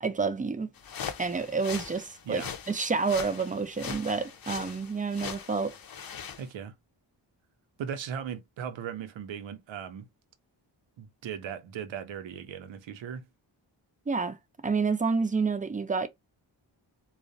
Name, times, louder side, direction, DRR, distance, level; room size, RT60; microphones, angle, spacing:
voice 1, 0.0-0.7 1.2-2.4 2.7-5.7 14.1-14.4 14.6-16.1, right 4 dB, 20° right, 0.3 m, -29 dB
sound 1, 0.8-6.5, left 7 dB, 50° left, 0.6 m, -41 dB
voice 2, 6.4-6.7 7.8-10.1 11.0-13.3, right 8 dB, 90° right, 0.6 m, -38 dB
2.3 x 2.0 x 2.6 m
cardioid pair, 55°, 45 cm